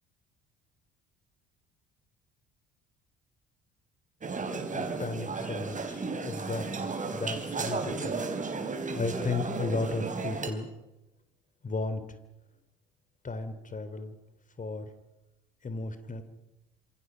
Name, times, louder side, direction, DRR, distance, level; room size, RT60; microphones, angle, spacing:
sound 1, 4.2-10.5, right 4 dB, 25° right, 4.0 m, -34 dB
voice 1, 4.7-8.2 8.9-10.7 11.6-12.0 13.2-14.2 14.6-14.9 15.6-16.2, left 3 dB, 25° left, 11 dB, 3.2 m, -34 dB
27.0 x 27.0 x 5.3 m, 0.97 s
figure-of-eight pair, 55°, 29 cm